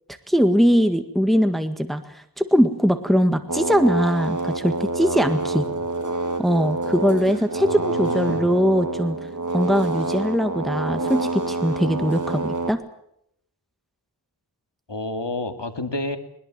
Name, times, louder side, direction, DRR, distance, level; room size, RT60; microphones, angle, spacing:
voice 1, 0.3-5.6 6.4-9.2 9.5-12.8, equal, ahead, 8 dB, 1.7 m, -21 dB
sound 1, 3.5-12.7, right 2 dB, 45° right, 2.0 m, -27 dB
voice 2, 7.6-8.4 14.9-16.2, left 2 dB, 85° left, 7 dB, 2.4 m, -30 dB
21.5 x 21.0 x 7.6 m, 0.75 s
wide cardioid pair, 45°, 42 cm